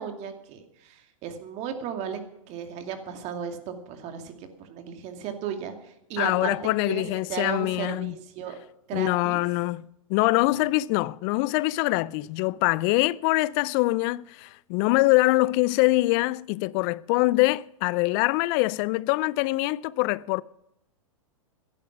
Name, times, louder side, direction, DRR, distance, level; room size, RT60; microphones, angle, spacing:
voice 1, 0.0-2.2 2.5-6.5 6.8-8.6 8.9-9.4 10.4-10.5, right 8 dB, 40° right, 2.3 m, -35 dB
voice 2, 6.2-8.2 8.9-9.8 10.1-20.4, left 21 dB, 40° left, 0.5 m, -24 dB
15.5 x 11.0 x 6.0 m
hypercardioid pair, 115°, 18 cm